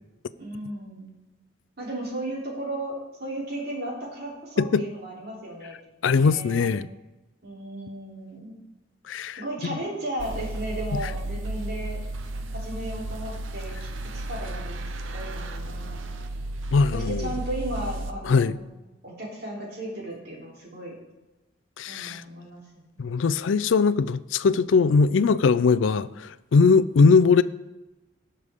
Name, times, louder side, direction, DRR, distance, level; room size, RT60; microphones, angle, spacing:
voice 1, 0.4-1.1 1.8-2.9 3.2-5.8 6.0-6.8 7.4-8.6 9.4-12.0 12.5-13.9 14.1-16.0 16.9-18.6 19.0-20.9 21.9-22.9, right 1 dB, 55° right, 3.3 m, -35 dB
voice 2, 6.0-6.9 9.1-9.4 16.7-17.3 18.2-18.6 21.8-22.2 23.0-27.4, left 5 dB, 80° left, 0.4 m, -20 dB
sound 1, 10.2-18.1, right 1 dB, 90° right, 0.8 m, -33 dB
18.0 x 6.6 x 3.6 m
head